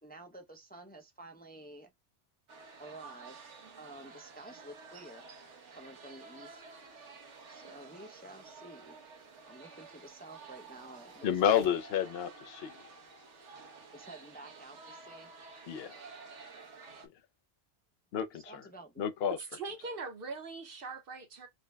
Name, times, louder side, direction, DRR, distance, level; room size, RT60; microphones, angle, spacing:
voice 1, 0.0-1.9 2.8-3.4 3.8-5.3 5.7-6.6 7.5-9.0 9.5-11.3 11.5-11.6 13.9-15.3 18.3-19.0, right 1 dB, 15° left, 0.4 m, -51 dB
sound 1, 2.5-17.1, right 4 dB, 85° right, 1.3 m, -52 dB
voice 2, 11.2-12.7 15.7-16.0 18.1-18.4 19.0-19.4, left 9 dB, 65° left, 0.8 m, -30 dB
voice 3, 19.2-21.5, right 4 dB, 55° right, 1.1 m, -41 dB
3.8 x 2.2 x 3.3 m
omnidirectional pair, 1.2 m